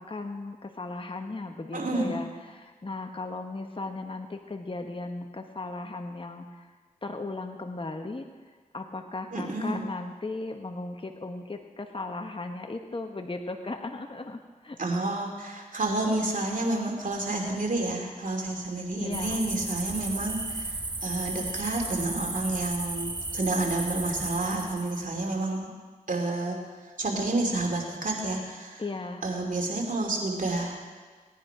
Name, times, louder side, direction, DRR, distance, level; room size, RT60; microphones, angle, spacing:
voice 1, 0.0-6.7 7.0-14.8 19.0-19.4 28.8-29.3, left 2 dB, 35° left, 5 dB, 1.2 m, -37 dB
voice 2, 1.7-2.2 9.3-9.8 14.8-25.7 26.1-28.8 29.2-30.7, right 2 dB, 60° right, 0 dB, 3.0 m, -30 dB
sound 1, 19.1-25.0, right 2 dB, 30° right, 1.0 m, -34 dB
18.0 x 10.0 x 4.9 m, 1.4 s
cardioid pair, 40°, 15 cm